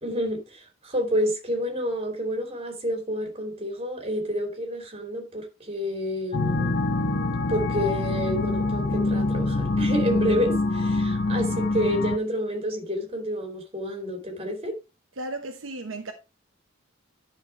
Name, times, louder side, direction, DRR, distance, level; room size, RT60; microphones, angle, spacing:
voice 1, 0.0-6.8 7.5-14.7, equal, 30° right, 3.0 m, -29 dB
sound 1, 6.3-12.2, left 2 dB, 55° left, 1.0 m, -25 dB
voice 2, 15.2-16.1, right 2 dB, 70° right, 1.1 m, -34 dB
11.0 x 4.6 x 4.5 m
head